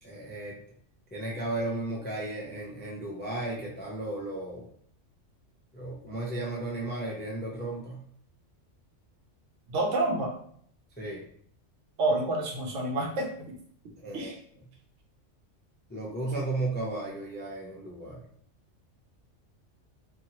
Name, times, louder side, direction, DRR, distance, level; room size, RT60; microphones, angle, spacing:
voice 1, 0.0-0.6 1.1-4.7 5.7-8.0 11.0-11.2 14.0-14.3 15.9-18.2, right 2 dB, 15° left, -4 dB, 0.3 m, -34 dB
voice 2, 9.7-10.3 12.0-13.5 14.1-14.4, right 2 dB, 80° right, 1 dB, 1.0 m, -28 dB
2.8 x 2.5 x 2.9 m, 0.62 s
omnidirectional pair, 1.2 m